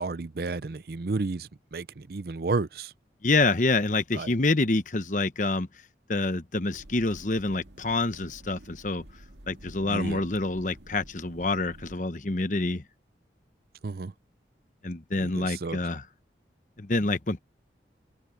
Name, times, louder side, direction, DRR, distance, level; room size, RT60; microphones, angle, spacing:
voice 1, 0.0-2.9 4.1-4.3 9.9-10.3 13.8-14.1 15.2-15.8, right 3 dB, 55° right, 0.6 m, -32 dB
voice 2, 3.2-5.7 6.1-9.0 9.5-12.8 14.8-16.0 16.8-17.4, left 2 dB, 45° left, 1.0 m, -27 dB
sound 1, 6.7-12.0, right 1 dB, 80° right, 2.2 m, -50 dB
open air
head